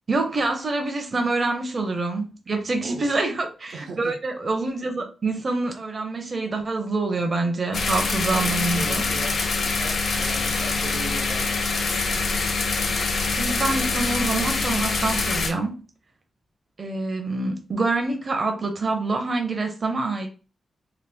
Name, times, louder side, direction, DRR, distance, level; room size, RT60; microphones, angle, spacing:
voice 1, 0.1-9.0 13.3-15.8 16.8-20.3, right 3 dB, 35° right, 0.6 m, -26 dB
voice 2, 2.8-3.2 3.7-4.2 8.3-11.6, right 4 dB, 85° right, 0.7 m, -38 dB
sound 1, 7.7-15.5, left 4 dB, 60° left, 0.6 m, -25 dB
2.9 x 2.3 x 3.4 m
wide cardioid pair, 135°, 0 cm